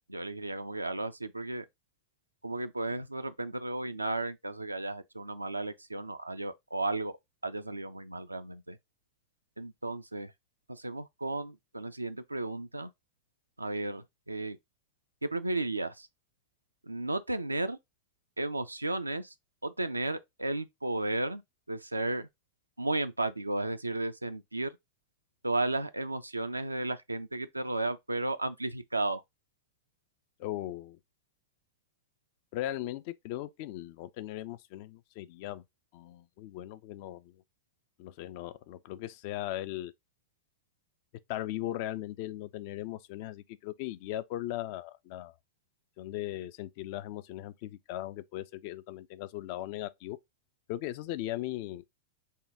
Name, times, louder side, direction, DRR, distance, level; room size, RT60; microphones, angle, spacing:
voice 1, 0.1-1.7 2.4-7.2 7.4-8.8 9.6-10.3 10.7-12.9 13.6-14.6 15.2-16.1 16.8-17.8 18.4-19.3 19.6-21.4 21.7-22.3 22.8-24.7 25.4-29.2, right 2 dB, 85° right, 0.4 m, -34 dB
voice 2, 30.4-31.0 32.5-35.6 35.9-37.3 38.0-39.9 41.3-45.3 46.0-50.2 50.7-51.8, left 14 dB, 45° left, 0.3 m, -38 dB
5.5 x 2.2 x 3.4 m
figure-of-eight pair, 90°, 0 cm